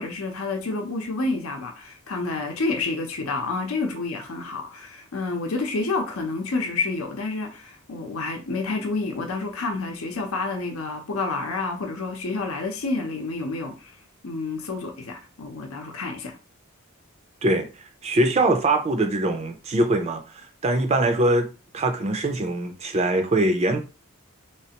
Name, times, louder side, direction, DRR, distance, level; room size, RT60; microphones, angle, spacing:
voice 1, 0.0-13.9 14.2-16.4, left 3 dB, 75° left, 0.7 m, -29 dB
voice 2, 18.0-23.8, right 2 dB, 30° right, 0.4 m, -23 dB
3.2 x 3.1 x 2.9 m
head